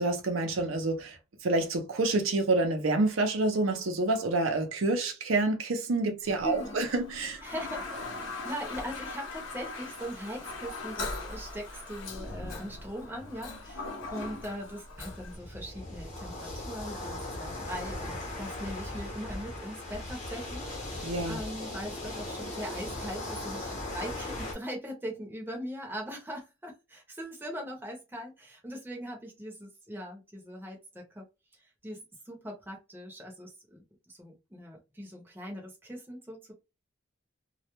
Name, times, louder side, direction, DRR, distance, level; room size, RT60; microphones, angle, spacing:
voice 1, 0.0-7.4 21.0-21.4, right 2 dB, 80° right, 0.6 m, -28 dB
Toilet flush, 6.2-15.4, left 3 dB, 75° left, 0.7 m, -40 dB
voice 2, 6.4-6.9 7.4-31.3 31.8-36.5, equal, 10° right, 0.7 m, -41 dB
sound 1, 15.0-24.5, left 1 dB, 35° left, 0.9 m, -38 dB
2.2 x 2.1 x 2.9 m
head